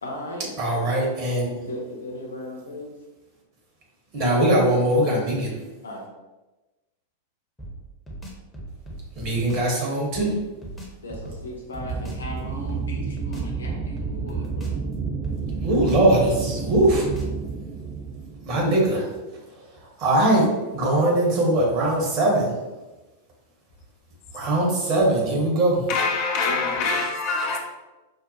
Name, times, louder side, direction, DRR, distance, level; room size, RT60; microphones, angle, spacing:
voice 1, 0.0-0.5 1.6-2.9 5.8-6.0 11.0-14.8 26.4-26.9, left 1 dB, 70° left, 0.8 m, -36 dB
voice 2, 0.6-1.5 4.1-5.5 9.2-10.3 15.6-17.1 18.5-19.1 19.8-22.6 24.3-25.8, right 1 dB, 40° right, 1.1 m, -21 dB
sound 1, 7.6-9.7 10.1-12.3 12.7-14.9 15.2-17.5, right 1 dB, 10° left, 0.8 m, -39 dB
sound 2, 11.8-18.8, right 5 dB, 20° right, 0.4 m, -30 dB
voice 3, 25.9-27.6, left 4 dB, 45° left, 0.5 m, -24 dB
5.3 x 2.1 x 2.7 m
figure-of-eight pair, 90°, 0 cm